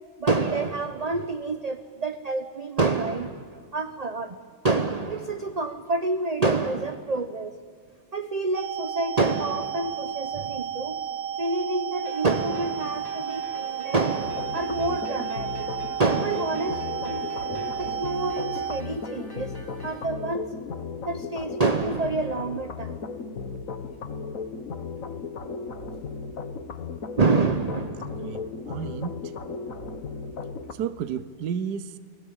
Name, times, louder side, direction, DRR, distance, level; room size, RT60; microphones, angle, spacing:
voice 1, 0.2-4.4 4.6-7.6 8.1-11.0 11.4-15.7 16.0-17.2 17.5-19.5 19.8-20.5 21.1-23.0 27.2-28.4, right 3 dB, 30° right, 8 dB, 0.8 m, -27 dB
sound 1, 8.5-18.8, right 8 dB, 85° right, 1.6 m, -32 dB
sound 2, 12.0-20.0, left 1 dB, 10° left, 4.1 m, -44 dB
sound 3, 14.2-30.7, left 4 dB, 50° left, 1.6 m, -36 dB
voice 2, 28.2-29.4 30.7-32.0, right 8 dB, 70° right, 14 dB, 1.3 m, -32 dB
30.0 x 20.0 x 8.8 m, 2.1 s
omnidirectional pair, 1.9 m